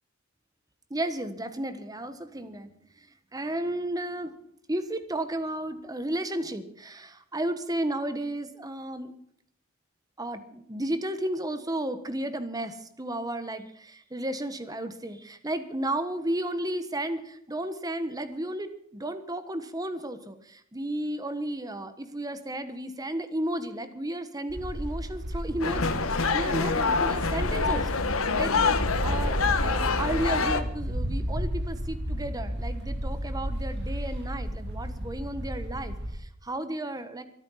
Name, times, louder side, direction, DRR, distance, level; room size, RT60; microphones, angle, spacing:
voice 1, 0.9-4.3 4.7-9.1 10.2-28.0 28.4-29.4 29.6-37.2, right 1 dB, 15° right, 11 dB, 1.3 m, -33 dB
sound 1, 24.5-36.2, equal, 55° right, 3.1 m, -32 dB
sound 2, 25.6-30.6, left 4 dB, 75° left, 1.4 m, -26 dB
24.5 x 8.9 x 5.7 m, 0.71 s
head